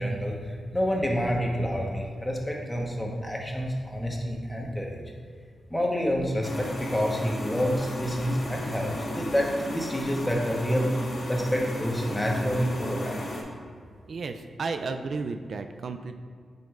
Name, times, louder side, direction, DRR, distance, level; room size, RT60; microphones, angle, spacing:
voice 1, 0.0-5.0 5.7-10.9 11.3-13.2, equal, 10° left, -1 dB, 1.0 m, -28 dB
sound 1, 6.4-13.4, left 1 dB, 55° left, 1.3 m, -35 dB
voice 2, 14.1-16.1, right 4 dB, 60° right, 7 dB, 0.3 m, -33 dB
9.1 x 5.1 x 2.4 m, 2.1 s
wide cardioid pair, 105°, 0 cm